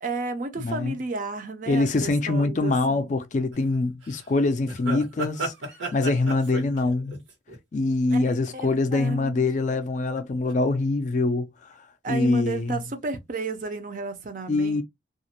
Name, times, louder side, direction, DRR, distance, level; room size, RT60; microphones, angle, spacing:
voice 1, 0.0-3.1 8.1-9.7 12.0-14.8, right 3 dB, 45° right, 0.4 m, -33 dB
voice 2, 0.6-0.9 1.7-5.5 5.9-7.2 7.7-11.5 12.1-12.8 14.5-14.8, left 3 dB, 40° left, 0.3 m, -24 dB
sound 1, 3.5-3.8 4.0-4.2 4.7-8.3 8.6-9.0 9.7-10.2 10.5-10.6, right 2 dB, 85° right, 1.1 m, -33 dB
2.4 x 2.1 x 2.7 m
head